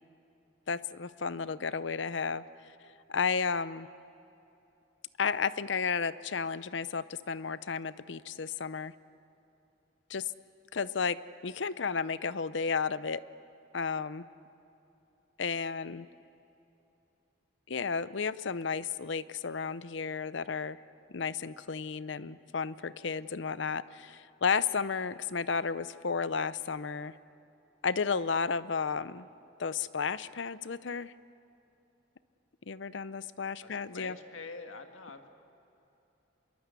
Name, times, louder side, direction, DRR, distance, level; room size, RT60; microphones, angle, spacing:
voice 1, 0.7-2.7 3.1-3.9 5.2-8.9 10.1-10.3 10.7-13.2 13.7-14.2 15.4-16.1 17.7-20.8 21.1-27.1 27.8-29.3 29.6-31.1 32.7-34.2, left 5 dB, 65° left, 16 dB, 0.6 m, -33 dB
voice 2, 33.6-35.3, left 3 dB, 85° left, 6 dB, 1.8 m, -45 dB
26.0 x 22.5 x 8.3 m, 2.9 s
head